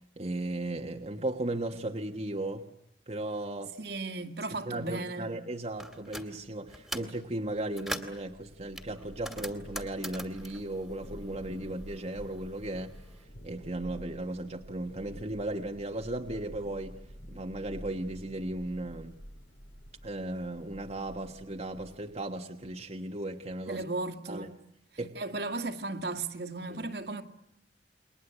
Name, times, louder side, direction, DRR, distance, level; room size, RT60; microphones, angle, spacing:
voice 1, 0.2-2.7 3.1-3.7 4.6-12.9 13.4-17.0 17.3-19.1 20.0-23.8 24.3-24.5 25.0-25.2 26.7-26.8, right 1 dB, 35° right, 1.4 m, -36 dB
voice 2, 3.8-5.4 23.7-24.7 25.2-27.2, right 2 dB, 65° right, 2.1 m, -36 dB
sound 1, 5.8-6.3 6.7-7.2 7.6-8.2 8.8-11.7 12.0-13.1, equal, ahead, 2.3 m, -41 dB
Thunder / Rain, 8.3-22.2, equal, 70° left, 4.6 m, -49 dB
29.0 x 22.5 x 8.2 m
head